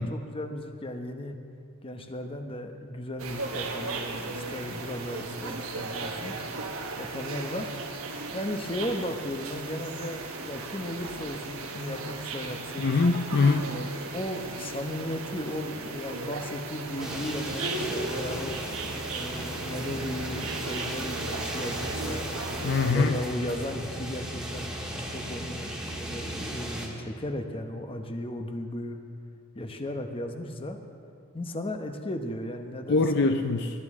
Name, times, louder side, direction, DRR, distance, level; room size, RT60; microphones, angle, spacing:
voice 1, 0.0-1.4 1.8-6.3 7.0-7.7 8.3-12.9 13.6-18.6 19.1-22.3 22.8-29.0 29.5-30.8 31.3-33.3, left 1 dB, 25° left, 6 dB, 0.9 m, -35 dB
sound 1, 3.2-22.9, right 3 dB, 85° right, 1.3 m, -36 dB
voice 2, 12.8-13.7 22.6-23.2 32.9-33.8, left 4 dB, 55° left, 6 dB, 0.5 m, -23 dB
sound 2, 17.0-26.9, right 1 dB, 5° right, 1.6 m, -36 dB
21.0 x 11.0 x 3.7 m, 2.3 s
head